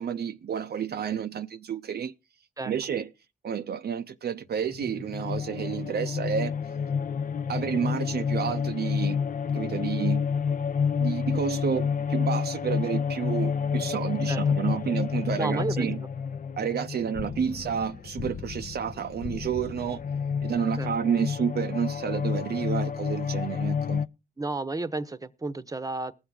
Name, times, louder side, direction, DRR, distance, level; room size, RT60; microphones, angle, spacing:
voice 1, 0.0-2.1 2.6-3.1 3.4-6.6 7.5-9.2 9.5-10.2 11.0-16.0 16.6-20.0 20.4-24.0, right 7 dB, 65° right, 0.5 m, -30 dB
sound 1, 4.7-24.1, left 6 dB, 50° left, 0.6 m, -29 dB
voice 2, 15.4-15.9 20.8-20.9 24.4-26.1, right 2 dB, 20° right, 0.8 m, -31 dB
19.5 x 7.0 x 3.7 m
cardioid pair, 60°, 18 cm